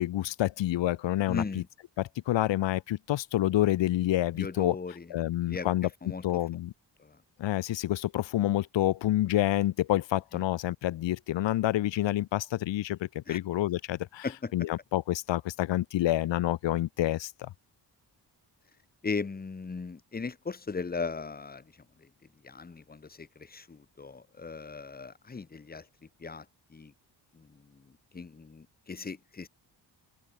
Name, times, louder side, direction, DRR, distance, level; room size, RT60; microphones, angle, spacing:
voice 1, 0.0-1.6 2.0-4.8 5.1-5.9 6.2-6.7 7.4-14.3 14.5-17.3, left 14 dB, 80° left, 0.7 m, -28 dB
voice 2, 1.3-1.7 4.3-5.7 6.0-6.4 7.0-7.2 10.3-10.4 13.3-13.4 14.2-14.7 19.0-21.6 22.4-25.9 26.2-26.4 26.7-26.9 27.3-27.8 28.1-29.5, left 4 dB, 20° left, 1.1 m, -38 dB
open air
wide cardioid pair, 135°, 44 cm